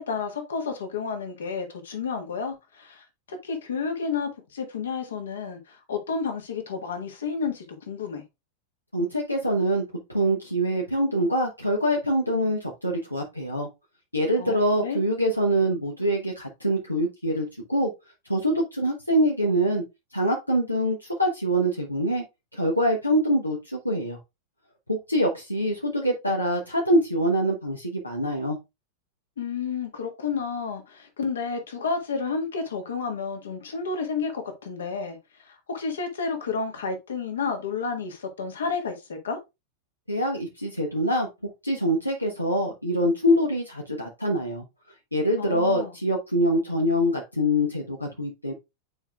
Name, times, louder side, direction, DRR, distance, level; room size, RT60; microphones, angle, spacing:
voice 1, 0.0-8.2 14.4-15.0 29.4-35.2 35.4-39.4 45.4-45.9, left 5 dB, 65° left, 1.5 m, -31 dB
voice 2, 8.9-9.8 10.1-13.7 14.1-17.9 18.3-19.8 20.1-22.2 22.5-24.2 24.9-28.6 40.1-41.3 41.6-44.6 45.1-48.5, equal, 85° left, 1.0 m, -24 dB
8.6 x 4.6 x 2.4 m
figure-of-eight pair, 90°, 0 cm